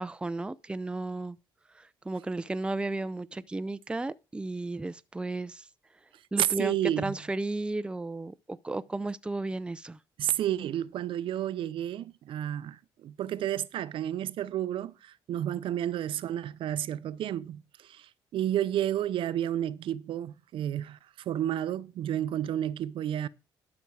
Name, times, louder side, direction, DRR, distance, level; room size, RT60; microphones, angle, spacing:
voice 1, 0.0-1.4 1.7-5.6 6.3-6.8 7.0-10.0, right 2 dB, 10° right, 0.5 m, -34 dB
voice 2, 6.4-7.2 10.2-23.3, right 11 dB, 70° right, 0.6 m, -31 dB
12.0 x 6.1 x 4.7 m
cardioid pair, 90°, 9 cm